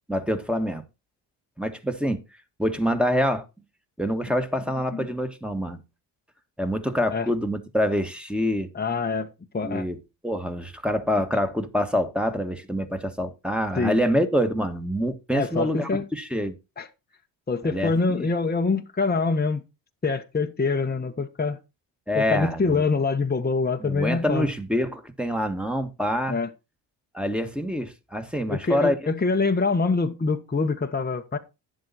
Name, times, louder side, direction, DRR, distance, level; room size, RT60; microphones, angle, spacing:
voice 1, 0.1-0.8 1.6-2.2 2.6-3.4 4.0-5.8 6.6-8.7 9.6-10.0 10.2-16.5 17.6-18.3 22.1-22.9 23.8-26.4 27.1-28.9, equal, ahead, 1.8 m, -26 dB
voice 2, 8.7-9.3 9.5-9.9 13.8-14.0 15.3-16.0 16.8-16.9 17.5-19.6 20.0-21.6 22.1-24.5 26.3-26.5 28.5-31.4, left 4 dB, 20° left, 1.2 m, -25 dB
10.0 x 7.7 x 4.2 m
supercardioid pair, 55°, 47 cm